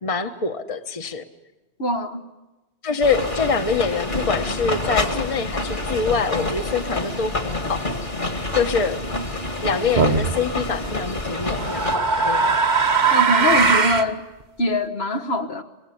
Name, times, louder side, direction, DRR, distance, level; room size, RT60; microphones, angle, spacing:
voice 1, 0.0-1.2 2.8-7.8 8.5-9.0 9.6-12.5, left 5 dB, 35° left, 1.1 m, -25 dB
voice 2, 1.8-2.2 13.1-14.2 14.6-15.6, left 1 dB, 80° left, 1.7 m, -23 dB
sound 1, 3.0-12.0, left 2 dB, 50° left, 2.3 m, -27 dB
sound 2, 10.0-10.3 11.3-14.1, right 4 dB, 45° right, 1.2 m, -19 dB
25.0 x 21.0 x 8.5 m
omnidirectional pair, 1.0 m